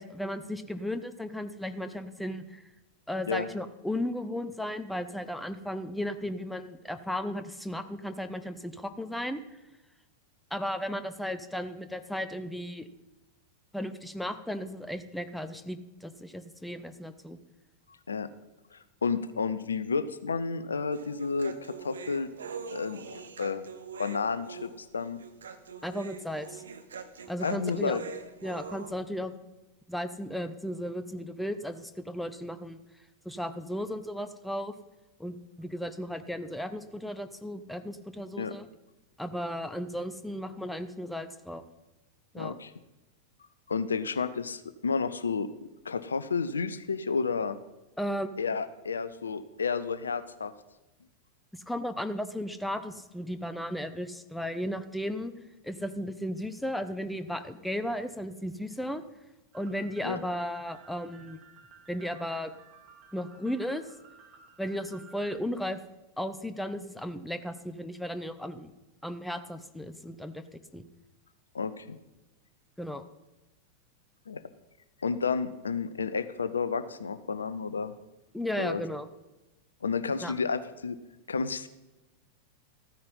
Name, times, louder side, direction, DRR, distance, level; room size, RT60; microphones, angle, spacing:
voice 1, 0.0-2.6 3.1-9.4 10.5-12.9 13.7-17.4 25.8-26.6 27.3-28.0 28.4-29.3 29.9-32.8 33.2-34.7 35.2-38.7 39.2-41.6 42.3-42.6 48.0-48.4 51.5-55.3 55.6-59.0 59.5-61.4 61.9-62.5 63.1-63.8 64.6-65.8 66.2-68.7 69.0-70.8 72.8-73.0 78.3-79.1 80.2-80.3, equal, ahead, 10 dB, 0.8 m, -35 dB
voice 2, 18.7-22.3 22.7-23.6 24.0-25.2 27.4-28.0 38.4-38.5 42.4-42.7 43.7-45.5 45.8-47.6 48.4-50.5 60.0-60.2 71.5-72.0 74.3-74.4 75.0-77.9 78.6-78.8 79.8-81.0 81.3-81.7, left 5 dB, 70° left, 14 dB, 0.6 m, -31 dB
Human voice, 20.9-28.9, right 5 dB, 70° right, 1.0 m, -43 dB
sound 1, 59.5-65.4, right 6 dB, 40° right, 2.2 m, -55 dB
13.5 x 9.6 x 5.4 m, 1.0 s
figure-of-eight pair, 90°, 0 cm